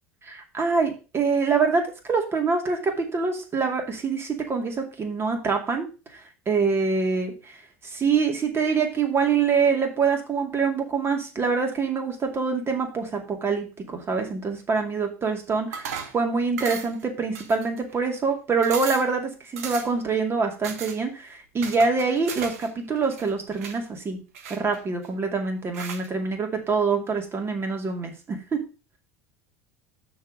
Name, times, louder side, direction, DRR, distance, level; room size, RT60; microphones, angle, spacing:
voice 1, 0.2-5.9 6.1-6.2 6.5-7.5 7.8-24.2 24.5-28.6, right 5 dB, 30° right, 3 dB, 2.4 m, -25 dB
sound 1, 15.7-16.2 16.6-17.0 17.3-18.0 18.3-18.4 18.6-19.1 19.6-20.0 20.6-21.0 21.6-22.7 23.0-23.8 24.3-25.1 25.7-26.1, right 6 dB, 80° right, 1.3 m, -36 dB
6.4 x 4.7 x 6.3 m, 0.32 s
hypercardioid pair, 85°, 8 cm